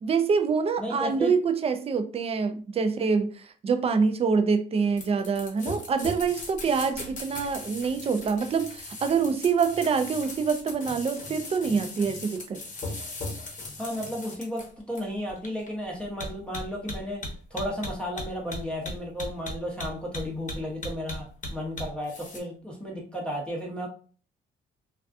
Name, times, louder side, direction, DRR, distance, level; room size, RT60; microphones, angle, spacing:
voice 1, 0.0-12.6, right 5 dB, 30° right, 0.3 m, -26 dB
voice 2, 0.8-1.3 13.8-17.2 17.5-23.9, equal, 5° left, 0.7 m, -33 dB
sound 1, 5.0-22.4, left 2 dB, 40° left, 0.8 m, -38 dB
2.3 x 2.3 x 2.4 m
cardioid pair, 90°, 20 cm